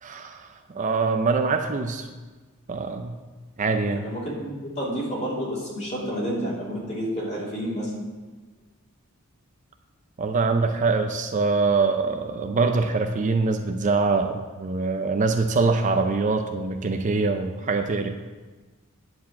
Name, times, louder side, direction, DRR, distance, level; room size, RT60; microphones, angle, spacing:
voice 1, 0.0-2.1 2.7-3.2 3.6-4.0 10.2-18.2, right 4 dB, 35° right, 6 dB, 0.5 m, -24 dB
voice 2, 4.0-7.9, equal, 30° left, -6 dB, 2.9 m, -30 dB
9.3 x 4.9 x 7.4 m, 1.3 s
head